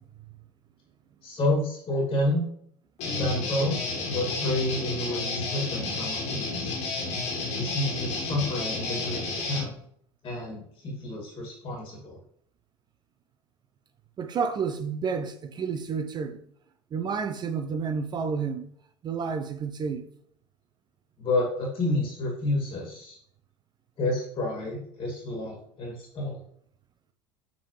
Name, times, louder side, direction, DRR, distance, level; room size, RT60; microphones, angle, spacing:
voice 1, 1.2-2.5 3.0-3.8 4.1-6.8 7.5-9.2 9.5-9.7 10.2-12.2 21.2-23.2 24.0-26.4, left 1 dB, 30° left, 2.2 m, -29 dB
Guitar, 3.0-9.7, left 3 dB, 45° left, 1.8 m, -31 dB
voice 2, 14.2-16.4 16.9-18.7 19.0-20.1, right 5 dB, 30° right, 0.5 m, -30 dB
8.3 x 3.8 x 3.1 m
figure-of-eight pair, 70°, 15 cm